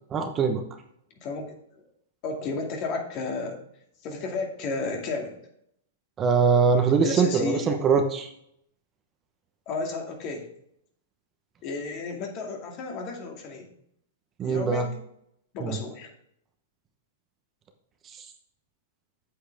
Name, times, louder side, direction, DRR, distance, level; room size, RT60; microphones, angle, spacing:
voice 1, 0.1-0.6 6.2-8.3 14.4-14.8 15.6-15.8 18.2-18.3, right 5 dB, 25° right, 5 dB, 1.0 m, -22 dB
voice 2, 2.2-3.6 4.0-5.4 7.0-7.6 9.7-10.5 11.6-13.7 14.4-15.0 15.5-16.1, left 3 dB, 40° left, 1 dB, 2.4 m, -32 dB
8.4 x 7.9 x 3.5 m, 0.72 s
hypercardioid pair, 125°, 0 cm